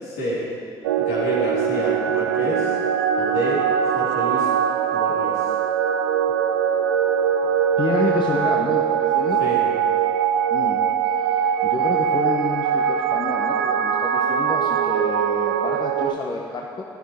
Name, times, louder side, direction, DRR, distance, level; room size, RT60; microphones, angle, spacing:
voice 1, 0.0-0.4 1.0-2.8 3.1-4.5 4.9-5.4 7.4-7.5 9.4-9.6, equal, 70° left, -6 dB, 3.5 m, -29 dB
sound 1, 0.8-16.1, right 8 dB, 80° right, 0.5 m, -22 dB
voice 2, 7.8-9.4 10.5-10.8 11.2-16.8, left 4 dB, 40° left, 0 dB, 1.2 m, -29 dB
15.0 x 10.0 x 4.9 m, 2.6 s
figure-of-eight pair, 50°, 12 cm